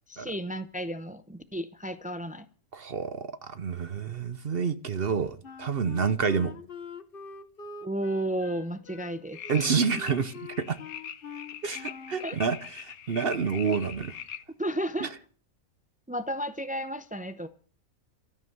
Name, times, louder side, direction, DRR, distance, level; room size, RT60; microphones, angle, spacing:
voice 1, 0.1-2.5 7.8-9.7 12.2-12.4 14.6-15.1 16.1-17.5, right 1 dB, 15° right, 0.3 m, -33 dB
voice 2, 2.7-6.5 9.5-10.8 11.6-14.1 15.0-15.1, right 6 dB, 50° right, 0.9 m, -28 dB
Wind instrument woodwind instrument, 5.4-12.2, left 4 dB, 45° left, 1.3 m, -44 dB
sound 1, 9.3-14.4, left 9 dB, 80° left, 1.4 m, -42 dB
13.0 x 10.5 x 7.8 m
omnidirectional pair, 1.5 m